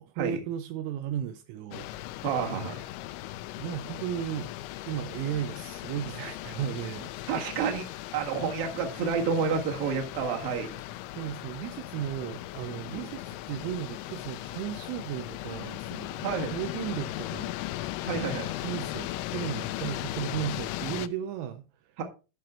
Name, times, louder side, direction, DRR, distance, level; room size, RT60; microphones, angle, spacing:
voice 1, 0.0-1.9 3.6-4.5 4.9-7.1 10.4-10.7 11.2-17.8 18.5-22.0, right 10 dB, 80° right, 3.1 m, -35 dB
sound 1, 1.7-21.1, left 15 dB, 90° left, 2.6 m, -38 dB
voice 2, 2.2-2.8 7.3-7.9 8.1-10.8 12.9-13.1 16.2-16.5 18.0-18.5 22.0-22.1, right 5 dB, 55° right, 2.8 m, -29 dB
12.0 x 5.7 x 4.3 m
omnidirectional pair, 5.9 m